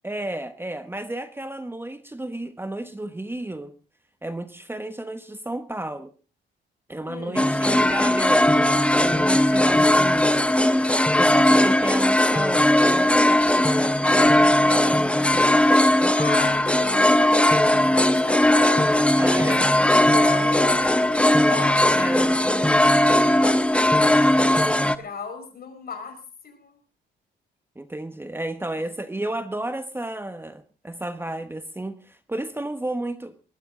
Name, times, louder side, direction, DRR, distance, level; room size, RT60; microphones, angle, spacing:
voice 1, 0.0-3.7 4.2-6.1 6.9-16.2 19.2-19.7 21.9-22.9 27.7-33.3, right 1 dB, 10° right, 10 dB, 1.2 m, -32 dB
voice 2, 7.0-8.1 16.2-19.0 19.4-19.8 20.1-21.9 22.7-26.8 28.7-28.9, left 5 dB, 50° left, 6 dB, 5.2 m, -37 dB
sound 1, 7.4-25.0, left 1 dB, 5° left, 0.9 m, -18 dB
20.0 x 13.0 x 3.8 m, 0.36 s
cardioid pair, 90°, 20 cm